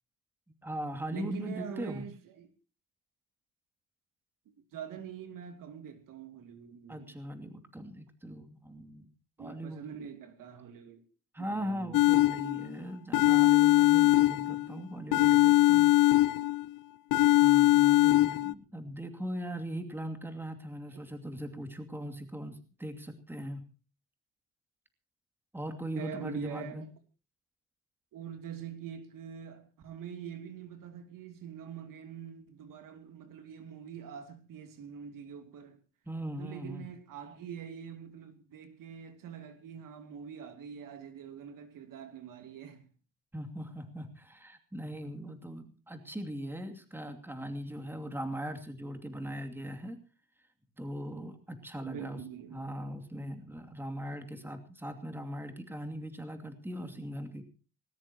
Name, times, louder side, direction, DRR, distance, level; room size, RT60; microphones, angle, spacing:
voice 1, 0.6-2.0 6.9-9.1 9.4-9.8 11.3-15.9 17.4-23.6 25.5-26.8 36.1-36.9 43.3-50.0 50.8-52.2 52.5-57.4, equal, 5° right, 2.6 m, -40 dB
voice 2, 1.1-2.5 4.5-7.1 9.4-11.0 11.4-12.1 26.0-26.9 28.1-35.8 36.4-42.9 51.8-52.6, right 7 dB, 75° right, 3.0 m, -44 dB
sound 1, 11.9-12.7 13.1-14.7 15.1-16.7 17.1-18.5, left 16 dB, 90° left, 0.7 m, -22 dB
19.5 x 19.0 x 2.9 m
cardioid pair, 145°, 33 cm